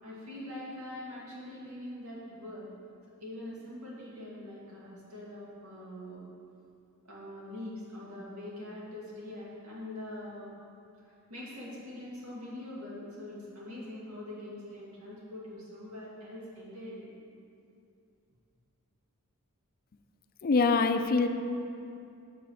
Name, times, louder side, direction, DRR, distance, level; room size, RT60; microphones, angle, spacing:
voice 1, 0.0-2.7 3.2-6.2 7.0-10.5 11.0-17.2, left 1 dB, 85° right, -6 dB, 2.3 m, -43 dB
voice 2, 20.4-21.3, left 4 dB, 40° left, 8 dB, 0.4 m, -24 dB
7.0 x 5.7 x 6.4 m, 2.5 s
head